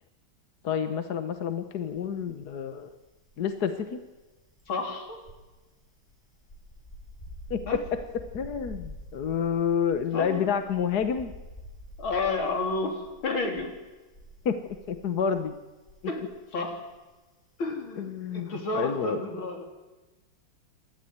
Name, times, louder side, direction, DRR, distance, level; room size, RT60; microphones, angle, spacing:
voice 1, 0.6-2.9 3.4-4.0 7.5-8.0 8.3-11.3 14.4-15.5 18.0-19.2, left 7 dB, 55° left, 9 dB, 1.5 m, -29 dB
sound 1, 1.8-2.7 2.9-16.4 16.7-17.0, left 1 dB, 20° left, 5.5 m, -47 dB
voice 2, 4.7-5.2 7.7-7.8 10.1-10.5 12.0-13.7 16.1-16.9 17.6-19.6, left 3 dB, 70° left, 3 dB, 4.0 m, -31 dB
28.0 x 13.0 x 9.5 m, 1.2 s
omnidirectional pair, 2.3 m